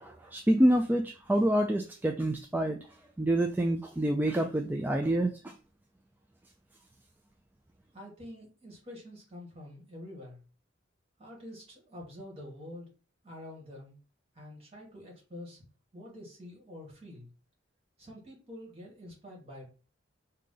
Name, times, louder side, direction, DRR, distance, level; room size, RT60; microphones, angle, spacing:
voice 1, 0.0-2.8 3.2-5.5, right 1 dB, 10° right, 3 dB, 0.4 m, -27 dB
voice 2, 7.9-10.4 11.2-12.9 13.2-14.0 14.3-15.6 15.9-17.3 18.0-19.6, left 1 dB, 30° right, -1 dB, 2.2 m, -47 dB
4.9 x 2.8 x 3.9 m, 0.36 s
head